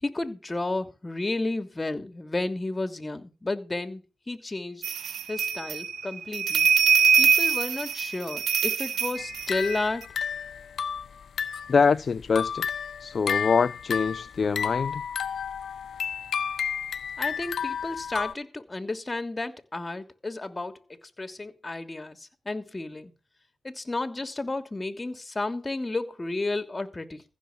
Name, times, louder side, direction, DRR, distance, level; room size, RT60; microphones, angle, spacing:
voice 1, 0.0-4.9 5.3-6.7 7.2-10.0 17.2-23.1 23.6-27.2, left 2 dB, 20° left, 2.9 m, -32 dB
sound 1, 4.8-10.0, right 6 dB, 70° right, 2.2 m, -24 dB
sound 2, 9.2-11.8 12.2-18.3, left 7 dB, 60° left, 1.2 m, -32 dB
voice 2, 11.7-12.7 13.0-15.0, left 5 dB, 45° left, 0.7 m, -24 dB
15.5 x 7.1 x 7.3 m
cardioid pair, 75°, 0 cm